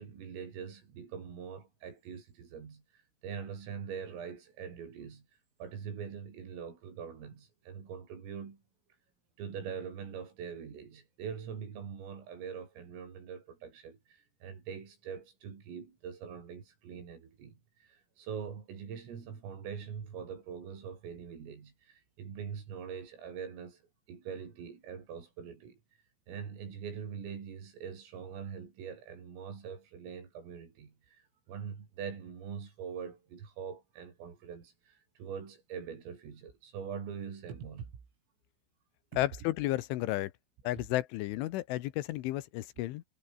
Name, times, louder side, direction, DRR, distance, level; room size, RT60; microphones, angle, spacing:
voice 1, 0.0-5.3 5.6-8.6 9.4-23.8 24.1-25.8 26.3-37.9, right 7 dB, 90° right, 7.7 m, -43 dB
voice 2, 39.2-40.3 40.7-43.0, left 16 dB, 75° left, 3.4 m, -32 dB
omnidirectional pair, 5.7 m